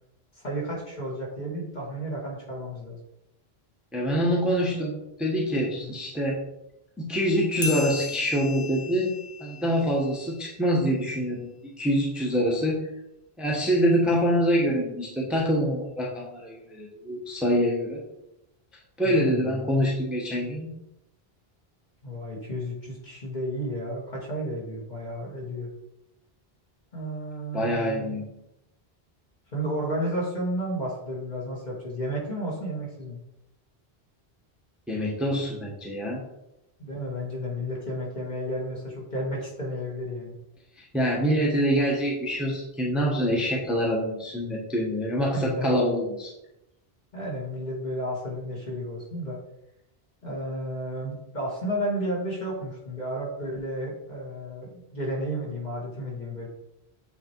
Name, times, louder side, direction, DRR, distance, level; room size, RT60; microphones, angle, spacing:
voice 1, 0.4-3.0 5.8-5.9 19.0-19.6 22.0-25.7 26.9-28.2 29.5-33.2 36.8-40.4 45.3-45.8 47.1-49.4 50.2-56.5, equal, 45° left, -4 dB, 2.2 m, -32 dB
voice 2, 3.9-6.4 7.0-9.1 9.4-11.5 11.8-12.8 13.4-18.0 19.0-20.7 27.5-28.2 34.9-36.2 40.8-46.3, equal, ahead, -3 dB, 1.1 m, -25 dB
sound 1, 7.6-10.7, left 4 dB, 70° left, 1.3 m, -36 dB
8.2 x 3.3 x 4.6 m, 0.86 s
omnidirectional pair, 1.0 m